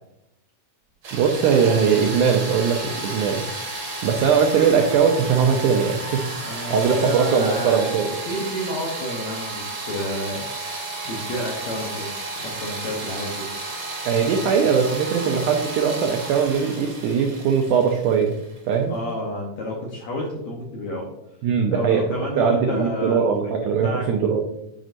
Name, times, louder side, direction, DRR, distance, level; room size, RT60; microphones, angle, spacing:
sound 1, 1.0-18.8, right 2 dB, 55° right, 1.4 m, -32 dB
voice 1, 1.1-3.4 4.0-6.3 6.7-8.1 14.1-18.4 18.7-18.9 21.4-22.0 22.4-24.4, right 6 dB, 90° right, 3 dB, 1.7 m, -20 dB
voice 2, 6.4-8.0 8.3-10.4 11.1-12.1 12.4-13.5 18.9-21.1 21.7-23.3 23.8-24.1, left 1 dB, 70° left, -2 dB, 1.7 m, -30 dB
7.6 x 5.1 x 2.6 m, 0.88 s
omnidirectional pair, 4.3 m